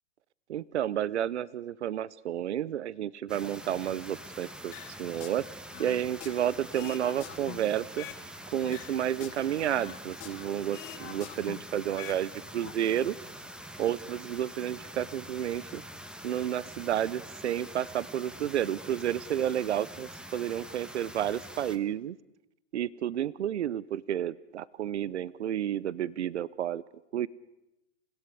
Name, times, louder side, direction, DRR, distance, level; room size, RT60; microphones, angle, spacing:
voice 1, 0.5-4.7 5.0-5.4 5.8-8.1 8.5-13.2 13.8-15.8 16.2-22.2 22.7-26.8 27.1-27.3, right 11 dB, 85° right, 21 dB, 0.8 m, -31 dB
sound 1, 3.3-21.8, equal, 5° right, 1.4 m, -45 dB
sound 2, 4.7-5.4 5.7-8.2 8.6-10.5 10.7-12.2 12.5-12.7, left 14 dB, 45° left, 2.6 m, -45 dB
28.5 x 16.5 x 8.3 m, 0.90 s
hypercardioid pair, 120°, 33 cm